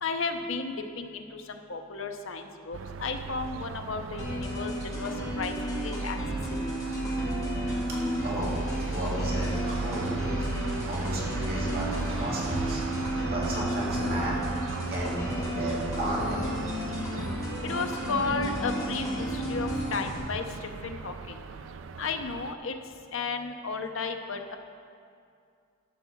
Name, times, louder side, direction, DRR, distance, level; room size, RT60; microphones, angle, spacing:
voice 1, 0.0-6.2 17.6-21.4 22.0-22.8 23.1-24.6, left 4 dB, 70° left, 5 dB, 0.7 m, -34 dB
sound 1, 2.7-22.5, right 4 dB, 65° right, 0.4 m, -36 dB
sound 2, 4.2-20.2, equal, 20° left, 2.3 m, -33 dB
voice 2, 8.2-10.1 10.7-12.8 13.3-14.4 14.8-16.7 17.5-17.6 21.6-21.9, right 1 dB, 50° right, -5 dB, 2.0 m, -34 dB
sound 3, 8.3-13.4, left 1 dB, 40° left, 2.2 m, -44 dB
12.0 x 4.6 x 7.0 m, 2.3 s
head